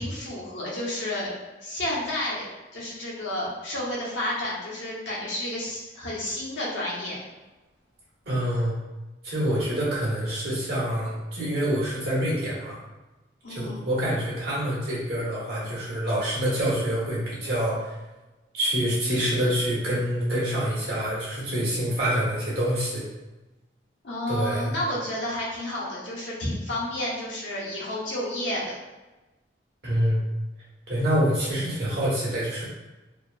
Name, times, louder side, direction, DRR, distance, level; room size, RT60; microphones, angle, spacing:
voice 1, 0.0-1.3 1.6-2.4 2.7-7.2 13.4-13.8 24.0-28.8, left 1 dB, 85° left, -5 dB, 0.8 m, -31 dB
voice 2, 8.3-8.7 9.2-12.8 13.5-17.9 18.5-23.0 24.3-24.7 29.8-30.2 30.9-32.6, equal, 60° right, -7 dB, 1.0 m, -26 dB
2.8 x 2.1 x 2.3 m, 1.1 s
head